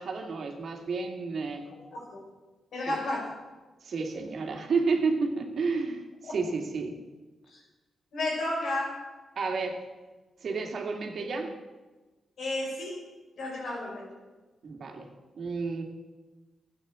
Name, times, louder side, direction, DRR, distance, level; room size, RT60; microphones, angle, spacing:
voice 1, 0.0-1.7 2.9-3.0 3.8-7.0 9.4-9.8 10.4-11.5 14.6-15.1 15.4-15.8, right 4 dB, 65° right, 3 dB, 2.4 m, -31 dB
voice 2, 1.9-2.2 2.7-3.3 6.2-6.4 7.5-7.6 8.1-9.1 12.4-13.0 13.4-14.1, left 1 dB, 75° left, -2 dB, 5.8 m, -32 dB
14.5 x 9.2 x 7.2 m, 1.2 s
cardioid pair, 70°, 0 cm